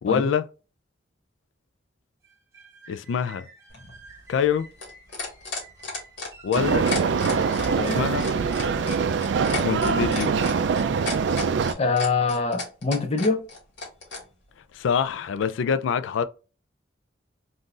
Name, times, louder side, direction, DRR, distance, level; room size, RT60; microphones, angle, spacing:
voice 1, 0.0-0.4 2.9-3.5 4.3-4.7 6.4-6.9 7.8-8.3 9.6-10.3 14.7-16.2, left 7 dB, 80° left, 0.3 m, -25 dB
sound 1, 2.2-10.1, right 3 dB, 15° right, 0.9 m, -48 dB
sound 2, 3.7-14.2 15.4-15.5, left 3 dB, 65° left, 1.5 m, -33 dB
sound 3, 6.5-11.7, right 5 dB, 70° right, 0.3 m, -23 dB
voice 2, 11.8-13.5, left 4 dB, 35° left, 0.6 m, -24 dB
3.7 x 2.5 x 2.4 m
head